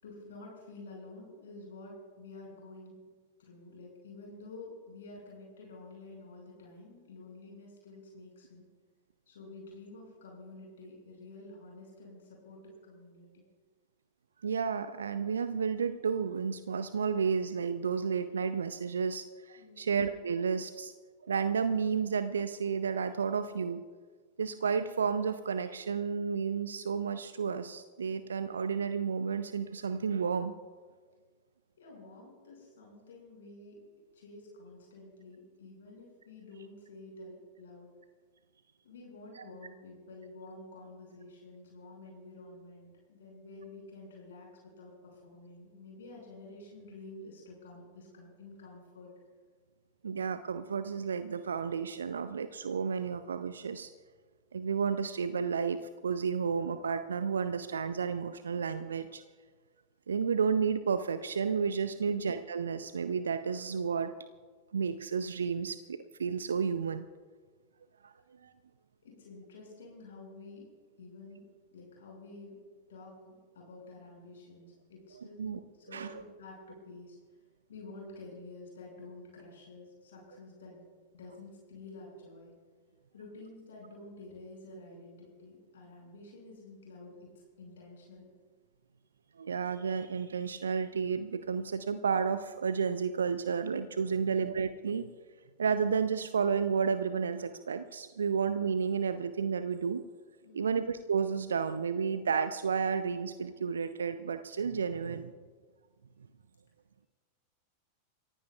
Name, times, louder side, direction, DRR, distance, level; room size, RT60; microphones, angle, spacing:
voice 1, 0.0-2.9 3.4-8.6 9.3-13.4 19.6-19.9 31.8-37.9 38.8-49.1 69.0-70.6 71.0-71.4 71.7-72.5 72.9-75.5 75.8-77.2 77.7-80.9 81.1-82.5 83.1-87.3 87.6-88.3 94.0-94.4 100.4-100.7, left 2 dB, 65° left, -2 dB, 5.9 m, -50 dB
voice 2, 14.4-20.9 21.2-23.8 24.4-30.5 39.4-39.5 50.0-53.9 54.5-59.2 60.1-64.1 64.7-67.1 68.0-68.1 68.4-68.5 75.4-75.6 75.9-76.1 89.4-95.1 95.6-100.0 100.5-105.3, right 6 dB, 70° right, 11 dB, 0.5 m, -32 dB
29.0 x 15.5 x 2.4 m, 1.5 s
figure-of-eight pair, 90°, 0 cm